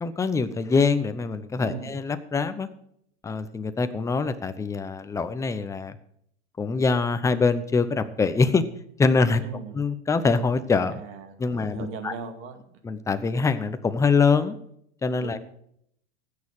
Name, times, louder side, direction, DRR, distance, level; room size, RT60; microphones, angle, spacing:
voice 1, 0.0-2.7 3.2-6.0 6.6-8.6 9.0-9.4 9.7-11.0 11.4-12.1 12.8-14.6 15.0-15.4, left 4 dB, 10° left, 10 dB, 0.7 m, -24 dB
voice 2, 1.6-1.9 9.4-9.8 10.9-12.6 15.2-15.4, right 5 dB, 40° right, 6 dB, 2.3 m, -38 dB
15.5 x 6.7 x 6.4 m, 0.70 s
supercardioid pair, 130°, 33 cm